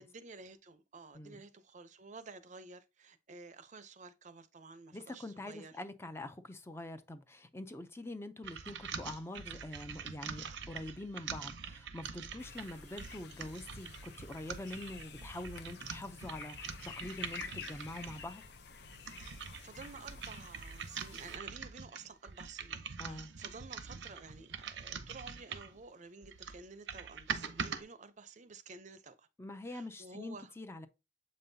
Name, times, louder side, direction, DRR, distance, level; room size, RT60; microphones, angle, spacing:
voice 1, 0.0-5.7 19.6-29.3 29.7-30.5, right 4 dB, 40° right, 0.6 m, -52 dB
voice 2, 4.9-18.4 23.0-23.3 29.4-30.9, left 1 dB, 15° left, 0.5 m, -45 dB
sound 1, 8.4-18.3 18.8-25.8 26.2-27.8, right 6 dB, 80° right, 0.7 m, -44 dB
sound 2, 12.4-21.4, left 6 dB, 60° left, 0.7 m, -50 dB
7.6 x 5.3 x 2.7 m
head